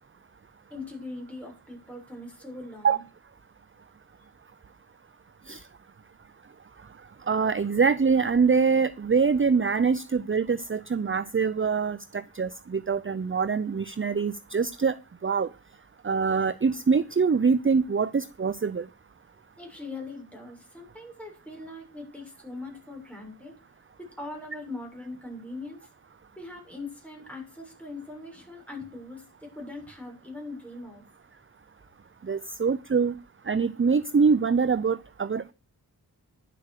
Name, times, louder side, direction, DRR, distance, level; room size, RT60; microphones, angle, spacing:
voice 1, 0.7-3.0 19.6-23.5 24.0-25.8 26.4-31.0, left 2 dB, 5° left, 7.0 m, -41 dB
voice 2, 7.3-14.9 15.2-15.5 16.0-18.8 32.3-33.1 33.5-35.5, right 5 dB, 35° right, 0.6 m, -24 dB
11.0 x 7.7 x 6.7 m
wide cardioid pair, 70°, 37 cm